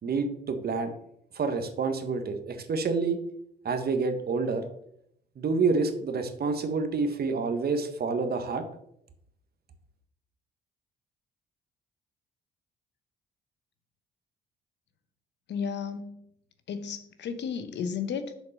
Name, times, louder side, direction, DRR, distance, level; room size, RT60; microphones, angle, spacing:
voice 1, 0.0-0.9 1.3-3.2 3.6-4.6 5.4-8.7, right 4 dB, 50° right, 8 dB, 1.4 m, -28 dB
voice 2, 15.5-16.2 16.7-18.3, left 6 dB, 65° left, 10 dB, 1.1 m, -33 dB
6.9 x 5.2 x 6.7 m, 0.74 s
supercardioid pair, 60°, 20 cm